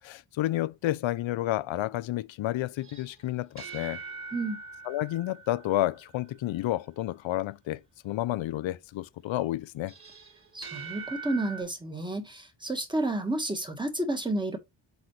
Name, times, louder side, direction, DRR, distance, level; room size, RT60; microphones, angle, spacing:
voice 1, 0.0-4.0 4.9-9.9, left 15 dB, 80° left, 0.5 m, -30 dB
sound 1, 2.8-6.3 9.9-11.6, right 4 dB, 30° right, 3.1 m, -43 dB
voice 2, 10.5-14.6, right 2 dB, 10° right, 1.6 m, -31 dB
7.9 x 4.2 x 3.2 m
wide cardioid pair, 115°, 45 cm